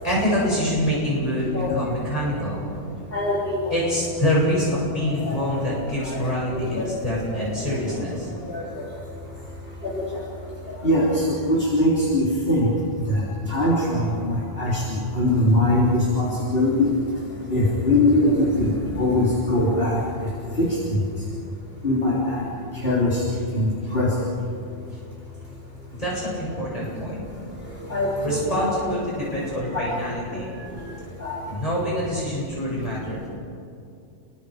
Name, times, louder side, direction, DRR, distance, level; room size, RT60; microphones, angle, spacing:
voice 1, 0.0-2.8 3.7-8.3 26.0-27.2 28.2-31.0 31.5-33.3, equal, 30° left, -6 dB, 7.8 m, -26 dB
voice 2, 3.1-3.8 5.3-5.4 6.0-6.3 6.8-7.2 7.6-7.8 8.5-8.6 9.8-10.0 10.8-12.7 13.1-13.2 13.5-16.9 17.5-20.0 20.6-21.0 21.8-22.4 22.8-23.2 23.5-24.1 27.6-28.9 29.7-30.0 30.3-30.4 31.2-31.4, left 1 dB, 50° left, -6 dB, 3.8 m, -22 dB
30.0 x 23.5 x 5.1 m, 2.5 s
omnidirectional pair, 1.2 m